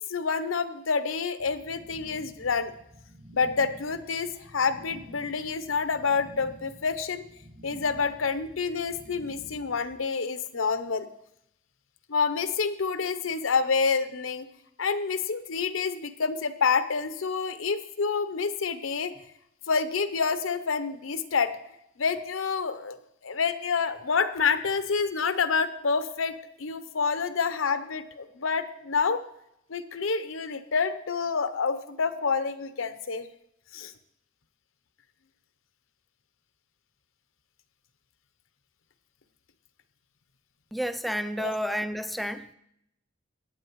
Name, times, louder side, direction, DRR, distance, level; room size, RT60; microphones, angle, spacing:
voice 1, 0.1-2.7 3.3-7.2 7.6-11.1 12.1-14.5 14.8-19.1 19.7-21.6 22.0-23.0 23.2-29.2 29.7-33.3 33.7-33.9 41.4-41.5, left 5 dB, 80° left, 11 dB, 0.7 m, -28 dB
sound 1, 1.4-9.9, equal, 55° right, 2.2 m, -50 dB
voice 2, 40.7-42.5, equal, ahead, 9 dB, 0.4 m, -30 dB
17.5 x 8.8 x 3.1 m, 0.78 s
head